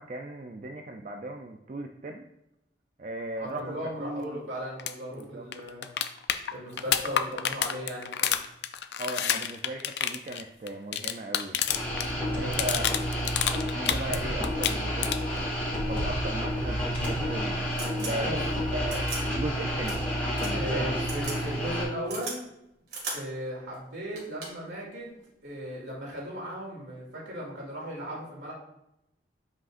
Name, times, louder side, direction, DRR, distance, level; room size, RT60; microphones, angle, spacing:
voice 1, 0.0-2.3 3.0-4.4 5.1-5.5 9.0-11.6 12.3-12.9 13.7-15.6 15.9-20.0 20.4-20.9, right 1 dB, 40° right, 3 dB, 0.4 m, -37 dB
voice 2, 3.4-5.8 6.5-8.3 12.2-12.9 18.2-18.4 20.5-22.4 23.1-25.1 25.4-28.5, equal, 75° right, -4 dB, 2.5 m, -37 dB
sound 1, 4.8-4.9 5.2-5.3 5.5-12.1 12.3-14.2 14.4-15.4 17.4-17.5, left 9 dB, 60° left, 0.4 m, -29 dB
sound 2, 11.7-21.8, equal, 10° left, 2.1 m, -30 dB
sound 3, 17.7-18.1 18.9-19.2 19.8-20.0 20.4-20.5 21.0-21.4 21.7-22.4 22.9-23.2 23.7-23.8 24.2-24.7 25.9-26.2, right 3 dB, 55° right, 2.0 m, -37 dB
8.2 x 5.1 x 2.5 m, 0.86 s
head